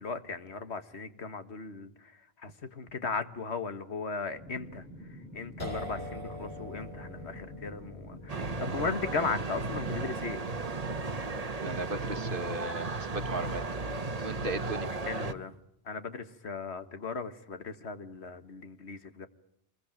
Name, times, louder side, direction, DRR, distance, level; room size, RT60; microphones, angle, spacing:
voice 1, 0.0-2.1 2.4-4.8 5.3-10.4 15.1-15.5 15.9-19.3, left 4 dB, 85° left, 10 dB, 1.8 m, -37 dB
sound 1, 4.3-10.4, equal, 10° left, 4.8 m, -48 dB
sound 2, 5.6-13.2, left 1 dB, 55° left, 8.3 m, -45 dB
sound 3, 8.3-15.3, right 3 dB, 35° right, 1.3 m, -35 dB
voice 2, 11.6-13.6 14.2-14.9, right 2 dB, 55° right, 8 dB, 1.7 m, -36 dB
26.0 x 22.0 x 8.9 m, 0.74 s
omnidirectional pair, 1.1 m